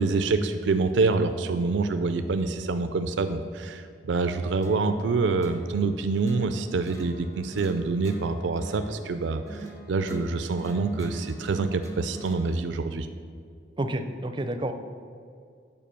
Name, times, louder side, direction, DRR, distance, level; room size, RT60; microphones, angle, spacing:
voice 1, 0.0-13.1, right 3 dB, 85° right, 9 dB, 0.4 m, -26 dB
sound 1, 4.6-12.6, right 2 dB, 15° left, 0.7 m, -42 dB
voice 2, 13.8-14.7, right 1 dB, 25° right, 8 dB, 0.4 m, -29 dB
7.6 x 4.7 x 6.8 m, 2.4 s
head